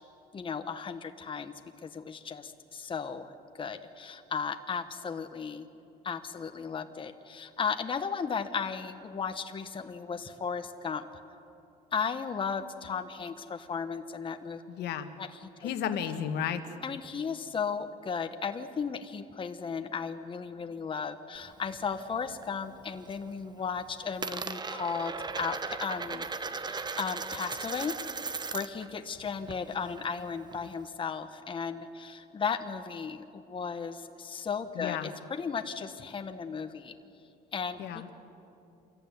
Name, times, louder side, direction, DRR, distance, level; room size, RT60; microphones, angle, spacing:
voice 1, 0.3-3.3 3.6-5.7 6.0-11.0 11.9-14.6 15.2-15.7 16.8-26.3 26.6-28.0 28.2-37.0 37.5-38.1, left 6 dB, 30° left, 7 dB, 1.2 m, -35 dB
voice 2, 14.7-15.1 15.6-16.7 34.7-35.1 37.8-38.0, left 9 dB, 75° left, 8 dB, 1.6 m, -33 dB
Coin (dropping), 21.4-22.5 22.8-23.3 23.6-28.9 29.2-30.9, right 4 dB, 25° right, 1.0 m, -38 dB
26.5 x 14.5 x 10.0 m, 2.7 s
cardioid pair, 110°, 17 cm